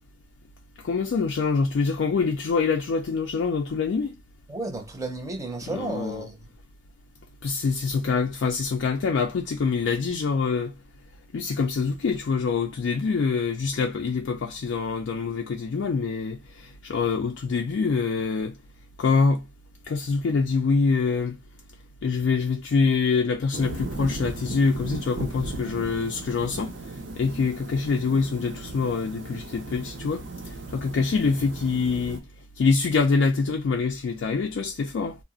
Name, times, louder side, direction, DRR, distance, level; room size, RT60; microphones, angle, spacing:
voice 1, 0.8-4.1 5.7-6.3 7.4-10.7 11.3-18.6 19.0-19.4 19.9-21.4 22.0-26.7 27.2-32.2 32.6-35.2, left 4 dB, 85° left, 0.4 m, -25 dB
voice 2, 4.5-6.5, right 2 dB, 20° right, 0.5 m, -33 dB
sound 1, 23.5-32.2, right 2 dB, 80° right, 0.6 m, -37 dB
2.4 x 2.0 x 3.6 m
head